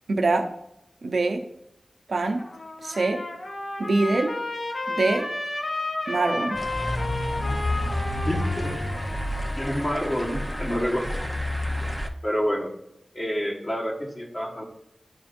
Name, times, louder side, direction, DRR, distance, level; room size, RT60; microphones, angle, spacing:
voice 1, 0.1-0.5 1.0-1.4 2.1-2.4 2.8-3.2 3.8-4.4 4.9-5.3 6.1-6.6, right 3 dB, 85° right, 5 dB, 0.6 m, -24 dB
Trumpet, 2.4-10.6, left 2 dB, 70° left, 1.0 m, -33 dB
sound 1, 6.5-12.1, left 1 dB, 5° left, 0.7 m, -29 dB
voice 2, 8.3-8.7 9.6-11.1 12.2-12.7 13.1-14.6, equal, 35° left, -1 dB, 1.4 m, -28 dB
11.0 x 4.3 x 2.6 m, 0.83 s
wide cardioid pair, 60°, 0 cm